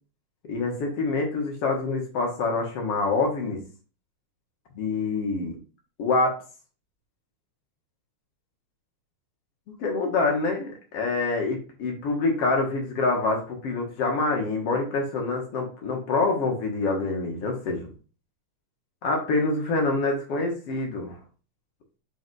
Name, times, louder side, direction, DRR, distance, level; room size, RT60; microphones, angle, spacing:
voice 1, 0.5-3.6 4.8-5.6 6.0-6.4 9.8-17.9 19.0-21.2, left 3 dB, 55° left, 2 dB, 2.3 m, -26 dB
5.3 x 5.2 x 4.7 m, 0.36 s
omnidirectional pair, 3.4 m